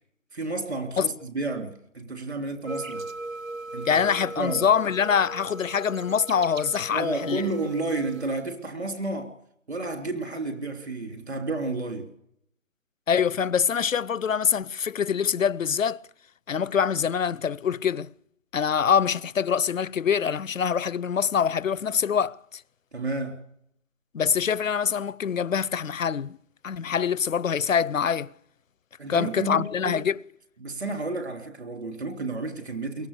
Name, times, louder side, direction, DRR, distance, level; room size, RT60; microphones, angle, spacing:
voice 1, 0.3-3.1 3.7-4.7 6.9-9.3 9.7-12.1 22.9-23.4 29.0-30.0 30.6-33.1, right 2 dB, 55° right, 3.4 m, -31 dB
sound 1, 2.7-8.4, right 2 dB, 80° right, 1.8 m, -39 dB
voice 2, 3.9-7.4 13.1-16.0 16.5-18.1 18.5-22.6 24.1-26.4 26.6-28.3 29.1-30.2, left 7 dB, 75° left, 0.7 m, -24 dB
22.5 x 18.5 x 6.8 m
figure-of-eight pair, 175°, 40 cm